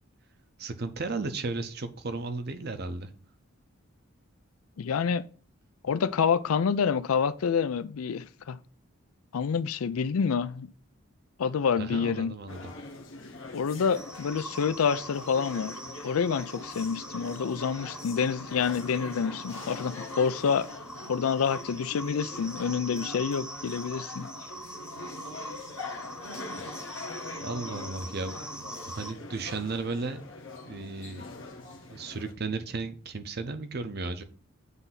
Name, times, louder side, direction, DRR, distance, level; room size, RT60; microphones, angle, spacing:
voice 1, 0.6-3.1 11.8-12.7 27.4-30.2 30.7-31.2 31.9-34.2, right 3 dB, 50° right, 0.7 m, -34 dB
voice 2, 4.8-5.2 5.8-8.6 9.3-10.7 11.4-12.3 13.5-15.7 16.0-20.7 21.1-24.3, left 6 dB, 85° left, 0.4 m, -27 dB
sound 1, 12.5-32.3, left 3 dB, 65° left, 1.1 m, -43 dB
sound 2, 13.9-29.1, right 1 dB, 5° right, 0.3 m, -43 dB
8.1 x 2.7 x 5.6 m
head